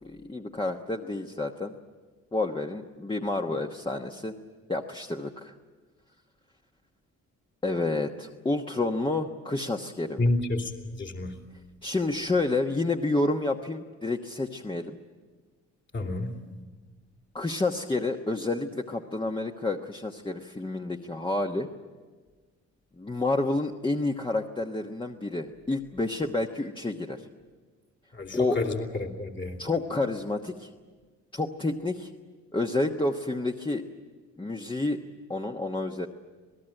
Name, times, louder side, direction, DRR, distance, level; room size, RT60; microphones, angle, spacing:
voice 1, 0.0-1.7 2.3-4.3 4.7-5.5 7.6-10.3 11.8-15.0 17.3-21.7 23.0-27.2 28.3-28.6 29.6-30.7 31.3-32.1 32.5-33.8 34.4-35.0 35.3-36.1, left 2 dB, 15° left, 2 dB, 1.2 m, -29 dB
voice 2, 10.2-10.7 11.0-11.3 15.9-16.3 28.1-29.6, left 2 dB, 40° left, 2 dB, 2.9 m, -29 dB
26.5 x 18.5 x 9.0 m, 1.4 s
cardioid pair, 90°, 30 cm